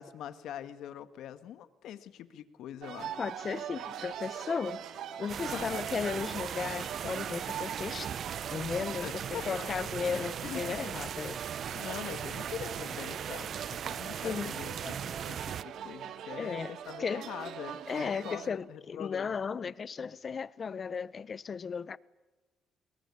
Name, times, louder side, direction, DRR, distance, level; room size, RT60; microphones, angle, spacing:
voice 1, 0.0-3.2 5.5-5.8 9.0-9.7 10.1-10.8 11.5-19.3, left 10 dB, 80° left, 1.6 m, -43 dB
sound 1, 2.8-18.5, right 9 dB, 75° right, 2.1 m, -42 dB
voice 2, 3.2-4.8 5.2-11.4 14.2-14.5 16.4-17.2 17.9-22.0, left 6 dB, 45° left, 0.8 m, -35 dB
sound 2, 5.3-15.6, right 8 dB, 60° right, 0.8 m, -38 dB
29.0 x 21.5 x 8.5 m
cardioid pair, 90°, 0 cm